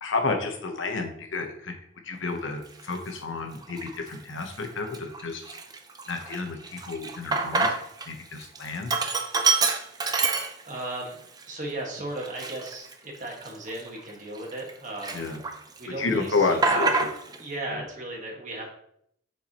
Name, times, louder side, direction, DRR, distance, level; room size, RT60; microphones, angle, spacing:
voice 1, 0.0-1.7 2.0-5.4 6.1-8.9 15.1-15.4 16.0-17.1, left 3 dB, 90° left, 4 dB, 1.0 m, -30 dB
Sink (filling or washing), 2.8-3.0 3.6-4.2 4.6-4.7 4.9-8.1 8.4-10.9 11.4-11.5 12.2-14.7 15.0-15.8 16.1-17.4, right 4 dB, 20° right, 0.5 m, -27 dB
voice 2, 10.0-11.2 11.5-15.2 15.8-16.9 17.4-18.7, right 1 dB, 40° right, -1 dB, 1.7 m, -36 dB
7.1 x 4.8 x 3.0 m, 0.69 s
head